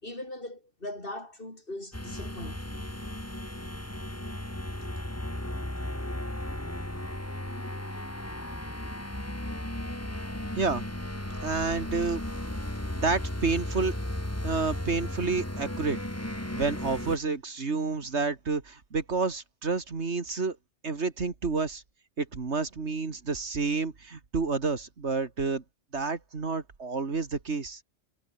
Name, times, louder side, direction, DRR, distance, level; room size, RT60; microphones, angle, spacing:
voice 1, 0.0-2.8, left 1 dB, 45° left, 5.6 m, -40 dB
sound 1, 1.9-17.2, left 1 dB, 10° left, 2.6 m, -35 dB
voice 2, 11.4-12.2 13.0-13.9 14.4-16.0 16.5-20.6 20.8-21.8 22.2-25.6 25.9-27.8, right 4 dB, 65° right, 2.4 m, -29 dB
omnidirectional pair, 1.2 m